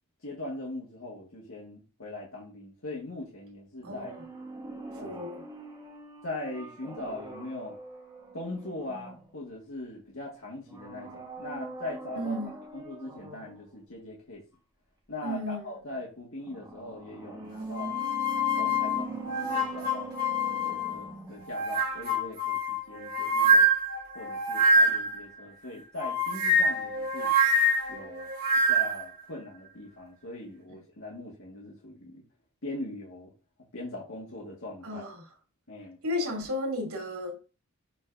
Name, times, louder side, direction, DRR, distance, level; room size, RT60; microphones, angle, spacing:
voice 1, 0.2-4.1 4.9-5.2 6.2-7.8 8.3-12.4 12.7-14.4 15.1-18.0 18.4-23.7 24.2-27.3 27.9-28.3 28.7-32.2 32.6-33.3 33.7-35.0 35.7-36.0, left 2 dB, 65° left, 1.7 m, -40 dB
sound 1, 3.8-9.6 10.6-13.7 16.4-21.6 21.9-22.0, right 3 dB, 15° right, 1.2 m, -42 dB
voice 2, 3.8-4.2 5.0-5.4 12.1-12.5 15.2-15.6 34.8-35.1 36.0-37.4, left 1 dB, 85° right, 2.8 m, -33 dB
sound 2, 17.7-21.0 21.5-25.2 26.0-29.0, right 1 dB, 45° right, 3.6 m, -25 dB
11.5 x 3.9 x 2.6 m
head